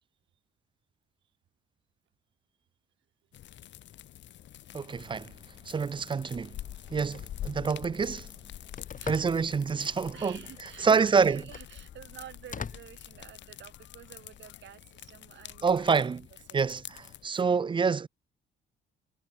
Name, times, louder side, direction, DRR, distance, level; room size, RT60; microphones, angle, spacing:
sound 1, 3.3-17.3, left 12 dB, 65° left, 0.9 m, -46 dB
voice 1, 4.7-5.3 5.7-6.6 6.9-8.3 9.1-11.5 15.6-16.3 16.5-18.1, right 5 dB, 25° right, 0.4 m, -27 dB
Telephone, 6.8-13.8, left 6 dB, 40° left, 3.8 m, -46 dB
voice 2, 9.0-9.5 10.1-16.1 16.5-16.6 17.2-17.4, right 11 dB, 70° right, 2.2 m, -49 dB
sound 2, 9.1-11.1 11.8-12.7 13.3-14.6 15.0-16.1, left 15 dB, 90° left, 4.5 m, -62 dB
cardioid pair, 90°, 20 cm